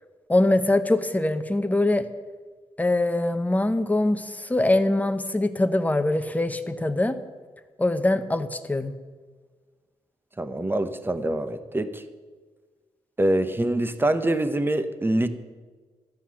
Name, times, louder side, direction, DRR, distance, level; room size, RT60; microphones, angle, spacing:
voice 1, 0.3-2.1 2.8-7.2 7.8-8.9, left 2 dB, 15° left, 9 dB, 1.0 m, -23 dB
voice 2, 10.4-12.0 13.2-15.3, right 1 dB, 20° right, 10 dB, 1.1 m, -25 dB
13.0 x 5.7 x 8.6 m, 1.4 s
supercardioid pair, 55°, 11 cm